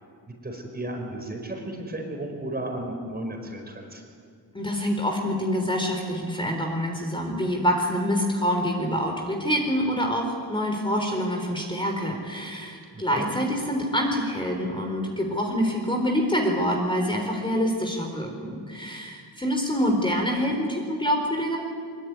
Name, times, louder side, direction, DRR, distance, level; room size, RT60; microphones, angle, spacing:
voice 1, 0.3-4.0 12.9-13.3, right 1 dB, 20° right, 3 dB, 4.8 m, -34 dB
voice 2, 4.5-21.6, equal, 10° left, 1 dB, 3.9 m, -26 dB
23.0 x 22.5 x 9.6 m, 2.1 s
wide cardioid pair, 135°, 42 cm